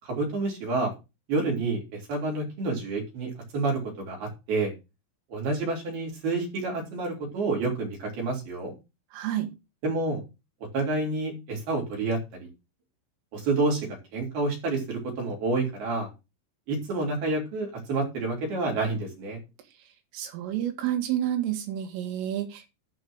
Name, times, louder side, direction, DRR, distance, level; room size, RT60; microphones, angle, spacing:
voice 1, 0.0-0.9 1.3-4.7 5.3-8.7 9.8-10.2 10.7-12.5 13.3-16.1 16.7-19.4, right 3 dB, 50° right, -1 dB, 5.1 m, -29 dB
voice 2, 9.1-9.5 20.1-22.7, right 11 dB, 80° right, 4 dB, 4.6 m, -29 dB
12.0 x 5.1 x 6.3 m, 0.27 s
omnidirectional pair, 5.8 m